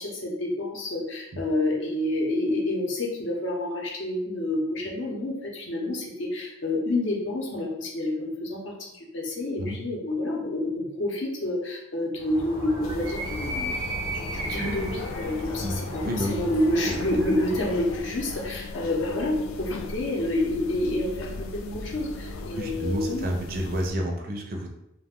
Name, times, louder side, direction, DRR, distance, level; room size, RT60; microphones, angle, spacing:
voice 1, 0.0-13.8 14.1-23.2, left 1 dB, 65° left, -2 dB, 0.7 m, -28 dB
Animal, 12.2-18.0, equal, 30° left, 0.7 m, -35 dB
sound 1, 12.8-23.9, left 3 dB, 85° left, 0.3 m, -38 dB
voice 2, 15.6-16.4 16.8-16.9 22.6-24.7, equal, 45° right, 2 dB, 0.4 m, -30 dB
2.4 x 2.1 x 3.5 m, 0.87 s
head